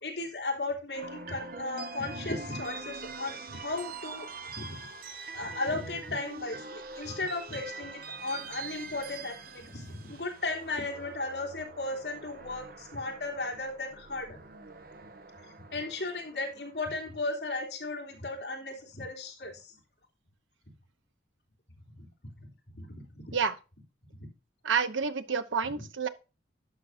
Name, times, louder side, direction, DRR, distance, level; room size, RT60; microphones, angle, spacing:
voice 1, 0.0-4.3 4.5-4.9 5.3-14.4 15.7-19.8 22.0-22.1 22.4-22.5 22.7-23.3 24.2-24.3 25.6-25.8, left 2 dB, 60° left, 3.2 m, -36 dB
sound 1, 0.9-17.1, right 4 dB, 50° right, 1.0 m, -44 dB
voice 2, 24.6-26.1, right 5 dB, 90° right, 0.9 m, -29 dB
11.5 x 6.3 x 2.6 m
head